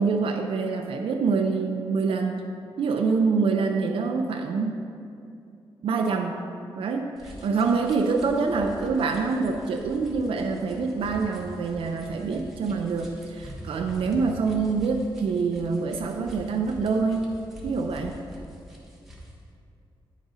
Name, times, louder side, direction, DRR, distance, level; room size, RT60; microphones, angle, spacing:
voice 1, 0.0-2.5 2.8-4.8 5.8-6.5 6.8-17.3 17.6-18.2, right 4 dB, 80° right, 3 dB, 0.5 m, -26 dB
sound 1, 7.2-19.4, equal, 5° right, 1.3 m, -44 dB
9.1 x 4.9 x 4.0 m, 2.5 s
wide cardioid pair, 110°, 9 cm